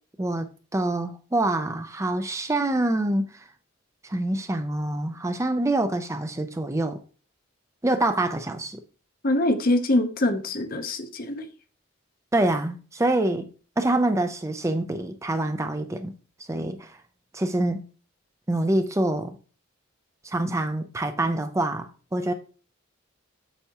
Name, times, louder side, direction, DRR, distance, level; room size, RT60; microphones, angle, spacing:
voice 1, 0.2-3.4 4.0-7.0 7.8-8.8 12.3-13.5 13.8-16.1 16.5-17.0 17.3-17.9 18.5-19.4 20.2-22.3, right 1 dB, 15° right, 0.5 m, -26 dB
voice 2, 9.2-11.5, left 1 dB, 45° left, 0.8 m, -24 dB
8.1 x 6.7 x 2.9 m
head